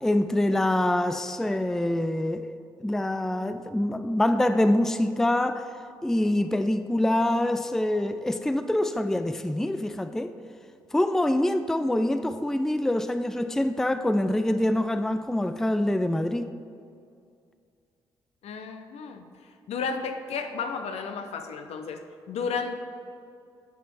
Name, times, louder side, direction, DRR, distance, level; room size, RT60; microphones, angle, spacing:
voice 1, 0.0-2.5 2.8-5.7 6.0-10.3 10.9-16.5, left 1 dB, 5° left, 0.4 m, -25 dB
voice 2, 18.4-19.2 19.7-22.0 22.3-22.8, left 5 dB, 60° left, 0.7 m, -32 dB
8.1 x 6.1 x 4.7 m
hypercardioid pair, 40°, 12 cm